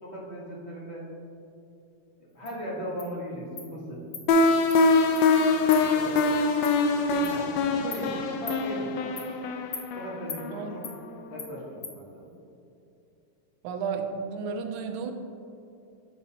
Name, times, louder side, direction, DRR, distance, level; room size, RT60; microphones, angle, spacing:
voice 1, 0.0-1.0 2.3-4.3 5.5-6.3 6.8-8.9 9.9-10.8 11.3-12.3, equal, 35° left, -4 dB, 1.6 m, -38 dB
Insect, 2.5-2.6 3.0-3.1 3.6-3.7 4.1-4.2 4.7-4.8 5.1-5.3 5.7-5.8 6.2-6.3 6.6-6.7 7.2-7.4 7.9-8.0 8.5-8.6 9.2-9.3 9.7-9.9 10.3-10.4 10.8-11.0 11.4-11.5 11.8-11.9, left 5 dB, 55° left, 0.9 m, -38 dB
sound 1, 4.3-11.1, left 3 dB, 75° left, 1.2 m, -24 dB
voice 2, 13.6-15.1, right 5 dB, 80° right, 5 dB, 1.5 m, -32 dB
8.9 x 6.8 x 2.9 m, 2.7 s
omnidirectional pair, 2.2 m